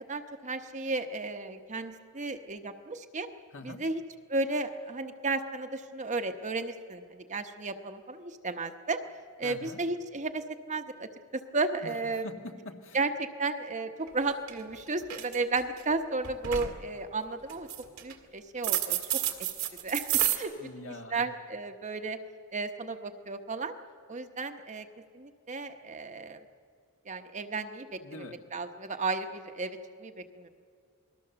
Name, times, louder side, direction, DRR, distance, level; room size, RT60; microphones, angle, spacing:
voice 1, 0.1-3.3 3.6-4.0 4.3-9.0 9.4-12.3 12.9-17.7 18.0-19.0 19.8-22.2 22.5-23.7 24.1-24.9 25.1-26.4 27.0-30.5, right 3 dB, 35° right, 7 dB, 1.0 m, -34 dB
voice 2, 3.5-3.8 9.4-9.8 11.8-11.9 12.2-13.0 20.6-21.3 28.0-28.4, left 2 dB, 65° left, 4 dB, 1.7 m, -44 dB
sound 1, 14.1-14.2 14.5-14.8 15.0-15.8 16.2-16.8 17.5-18.1 18.6-20.4, right 12 dB, 75° right, 1.9 m, -30 dB
28.0 x 20.0 x 6.9 m, 2.2 s
head